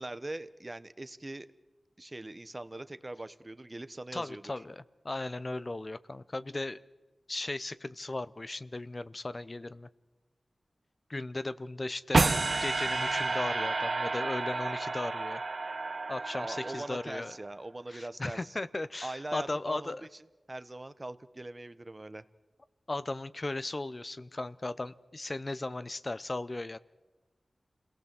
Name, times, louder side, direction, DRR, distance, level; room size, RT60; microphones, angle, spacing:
voice 1, 0.0-1.5 2.0-4.4 16.3-18.5 19.0-19.9 20.5-22.2, right 2 dB, 30° right, 14 dB, 0.9 m, -41 dB
voice 2, 4.1-6.8 7.3-9.9 11.1-15.4 16.1-17.4 17.9-20.1 22.9-26.8, left 2 dB, 40° left, 15 dB, 0.6 m, -37 dB
sound 1, 12.1-17.3, right 3 dB, 65° right, 0.8 m, -30 dB
27.5 x 18.0 x 7.5 m, 1.2 s
wide cardioid pair, 65°, 0 cm